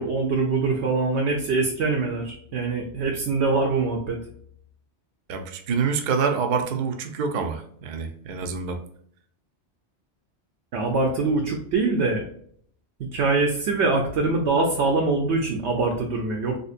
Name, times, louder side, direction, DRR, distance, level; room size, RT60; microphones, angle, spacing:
voice 1, 0.0-4.2 10.7-12.2 13.1-16.6, right 3 dB, 80° right, 1 dB, 0.9 m, -23 dB
voice 2, 5.3-8.8, right 5 dB, 60° right, 6 dB, 0.6 m, -26 dB
3.6 x 2.6 x 2.4 m, 0.62 s
omnidirectional pair, 1.1 m